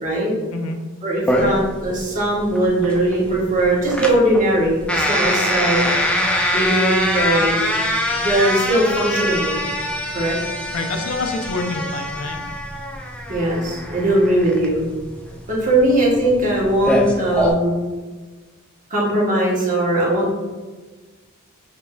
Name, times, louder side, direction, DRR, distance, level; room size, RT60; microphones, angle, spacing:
voice 1, 0.0-0.3 1.0-5.9 6.5-7.7 8.2-9.6 10.1-10.4 13.3-14.9 15.5-17.8 18.9-20.3, right 1 dB, 40° right, -5 dB, 1.1 m, -19 dB
sound 1, 1.3-17.5, left 1 dB, 5° left, 0.3 m, -23 dB
voice 2, 10.7-12.4, left 3 dB, 85° left, 4 dB, 0.5 m, -26 dB
5.1 x 2.6 x 2.2 m, 1.3 s
head